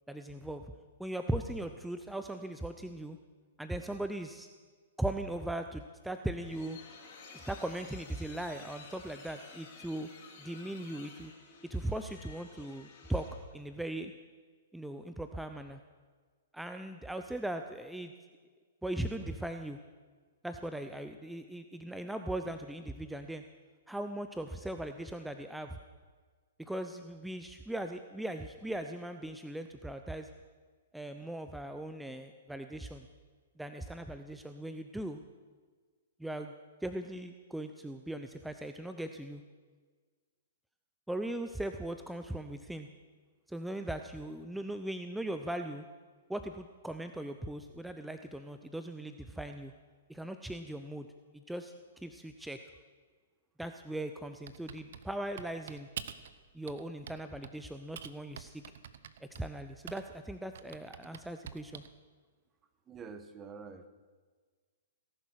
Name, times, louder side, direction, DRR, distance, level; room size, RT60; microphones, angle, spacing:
voice 1, 0.1-0.7 1.0-3.2 3.6-4.5 5.0-6.8 7.3-10.1 10.4-11.3 11.7-13.3 13.5-14.1 14.7-15.8 16.5-18.1 18.8-19.8 20.4-23.4 23.9-25.8 26.6-30.3 30.9-33.1 33.6-35.2 36.2-36.5 36.8-39.4 41.1-42.9 43.5-45.8 46.3-49.7 50.1-51.1 51.5-52.6 53.6-55.9 56.5-58.6 59.4-61.8, right 1 dB, 5° right, 7 dB, 0.7 m, -39 dB
sound 1, 6.0-13.6, left 5 dB, 45° left, 3.8 m, -53 dB
Typing, 54.5-56.3 56.7-57.6 58.0-60.2 60.6-62.0, right 8 dB, 65° right, 0.9 m, -46 dB
voice 2, 62.9-63.9, right 5 dB, 20° right, 9 dB, 1.3 m, -46 dB
18.0 x 11.0 x 6.4 m, 1.5 s
hypercardioid pair, 120°, 0 cm